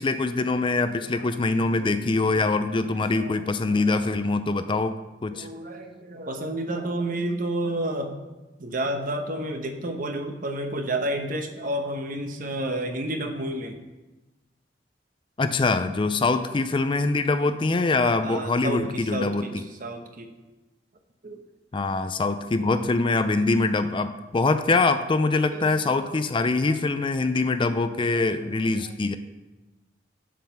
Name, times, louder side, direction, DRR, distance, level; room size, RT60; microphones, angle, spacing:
voice 1, 0.0-4.9 5.2-5.5 15.4-19.6 21.7-29.1, left 3 dB, 30° left, 10 dB, 0.4 m, -24 dB
voice 2, 1.0-2.0 2.8-4.1 5.3-8.2 8.6-13.8 18.2-19.5 19.8-20.3 21.2-21.4 25.5-26.2 26.6-26.8 28.1-28.3 28.7-28.9, right 1 dB, 50° right, 5 dB, 1.0 m, -31 dB
7.5 x 7.4 x 5.7 m, 1.1 s
head